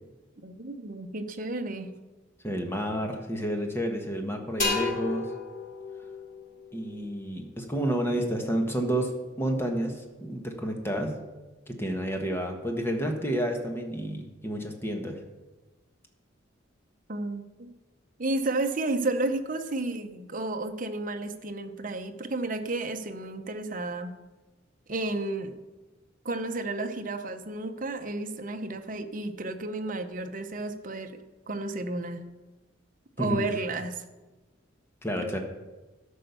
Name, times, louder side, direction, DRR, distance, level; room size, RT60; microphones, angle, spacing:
voice 1, 0.4-1.9 17.1-17.7 18.2-24.1 24.9-25.5 26.2-31.2 31.5-32.3 33.2-34.0 35.2-35.3, right 2 dB, 45° right, 7 dB, 0.8 m, -32 dB
voice 2, 2.4-5.3 6.7-9.1 9.4-11.1 11.7-15.2 33.2-33.4 35.0-35.4, right 1 dB, 10° left, 3 dB, 1.3 m, -30 dB
sound 1, 4.6-8.2, left 4 dB, 40° left, 2.7 m, -34 dB
12.5 x 5.5 x 6.9 m, 1.2 s
head